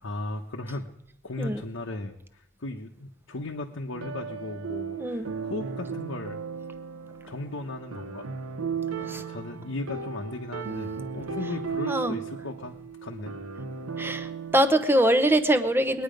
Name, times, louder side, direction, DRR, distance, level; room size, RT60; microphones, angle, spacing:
voice 1, 0.0-0.9 1.2-6.4 7.3-8.3 8.7-12.7 13.0-13.3, left 2 dB, 65° left, 2 dB, 1.0 m, -36 dB
sound 1, 3.9-14.6, right 6 dB, 90° right, 1.0 m, -35 dB
voice 2, 11.9-12.2 14.0-16.0, right 1 dB, 10° right, 8 dB, 0.7 m, -23 dB
21.5 x 9.7 x 5.2 m, 0.82 s
head